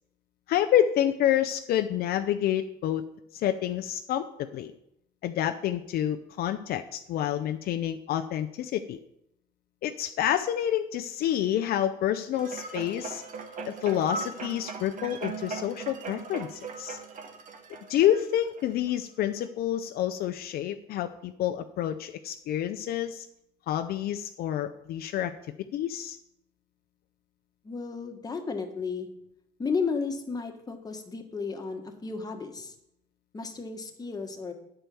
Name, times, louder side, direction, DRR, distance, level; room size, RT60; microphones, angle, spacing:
voice 1, 0.5-3.0 3.3-4.7 5.2-9.0 9.8-13.2 13.7-17.0 17.9-23.3 23.7-25.3 25.7-26.2, left 11 dB, 65° left, 7 dB, 0.5 m, -28 dB
sound 1, 12.3-18.9 19.4-19.5, right 4 dB, 50° right, 1.3 m, -39 dB
voice 2, 27.6-29.1 29.6-32.7 33.3-34.5, left 4 dB, 20° left, 4 dB, 1.3 m, -33 dB
9.0 x 4.5 x 6.9 m, 0.80 s
cardioid pair, 110°, 17 cm